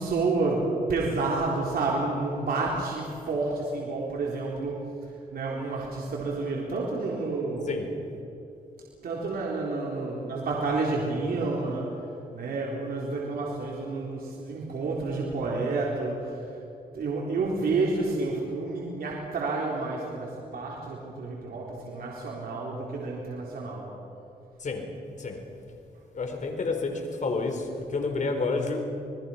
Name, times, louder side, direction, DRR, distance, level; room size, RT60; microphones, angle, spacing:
voice 1, 0.0-7.7 9.0-12.1 12.3-16.5 16.9-23.9, right 3 dB, 70° right, -3 dB, 3.9 m, -30 dB
voice 2, 26.1-28.8, left 3 dB, 50° left, 4 dB, 4.3 m, -29 dB
28.0 x 20.5 x 5.7 m, 2.8 s
cardioid pair, 80°, 16 cm